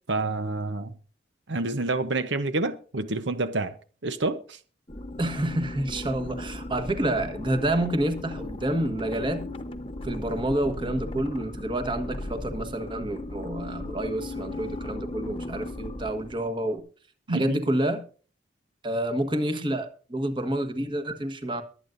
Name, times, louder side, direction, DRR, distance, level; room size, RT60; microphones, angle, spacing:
voice 1, 0.1-0.9 1.5-3.7 4.0-4.6 17.3-17.6, right 2 dB, 70° right, 0.9 m, -28 dB
sound 1, 4.9-16.6, left 1 dB, 30° left, 1.0 m, -37 dB
voice 2, 5.2-9.4 10.0-16.8 17.3-18.0 18.8-21.6, right 1 dB, 25° right, 1.4 m, -28 dB
23.0 x 9.0 x 2.7 m
head